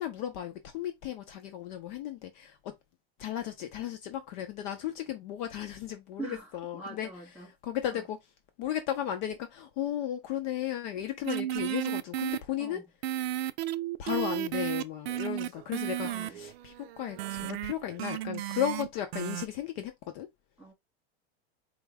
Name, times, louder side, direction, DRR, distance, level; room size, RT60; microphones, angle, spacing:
voice 1, 0.0-2.7 3.2-7.1 7.6-8.2 8.6-12.8 14.0-20.3, left 11 dB, 50° left, 0.6 m, -35 dB
voice 2, 6.2-7.5 7.9-8.0 12.6-12.9 16.0-16.4 20.6-20.7, right 3 dB, 5° right, 2.1 m, -43 dB
sound 1, 11.2-12.4 13.0-18.9 19.1-19.5, right 13 dB, 90° right, 0.5 m, -33 dB
4.5 x 2.1 x 3.3 m
supercardioid pair, 150°, 30 cm